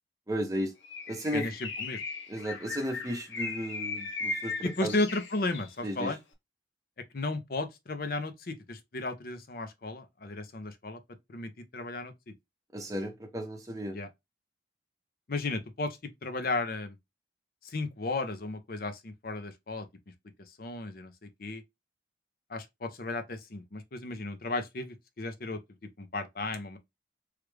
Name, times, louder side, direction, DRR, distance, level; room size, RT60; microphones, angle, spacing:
voice 1, 0.3-0.7 1.1-1.5 2.3-5.0 5.8-6.1 12.7-14.0, equal, 20° right, 0.8 m, -34 dB
Bird, 0.8-5.8, left 3 dB, 90° left, 0.8 m, -37 dB
voice 2, 1.3-2.0 4.6-6.2 7.1-11.0 11.3-12.1 13.9-14.1 15.3-17.0 17.6-19.9 20.6-21.1 21.4-21.6 22.5-25.6 26.0-26.8, left 2 dB, 50° left, 0.6 m, -34 dB
3.2 x 2.4 x 3.2 m
head